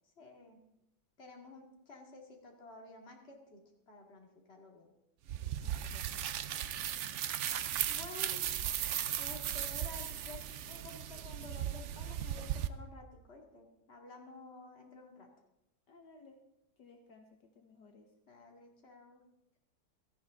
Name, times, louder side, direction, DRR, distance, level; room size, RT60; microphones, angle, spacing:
voice 1, 0.2-0.6 1.2-3.6 3.9-4.9 7.9-8.5 9.2-15.3 18.3-19.2, left 3 dB, 35° left, 1 dB, 2.4 m, -52 dB
Gravel sound, 5.3-12.7, right 10 dB, 70° right, 0.6 m, -37 dB
voice 2, 5.6-6.3 8.2-8.3 15.9-16.4 16.8-18.1, left 4 dB, 70° left, 3 dB, 1.9 m, -59 dB
17.0 x 14.0 x 3.7 m, 0.86 s
omnidirectional pair, 1.9 m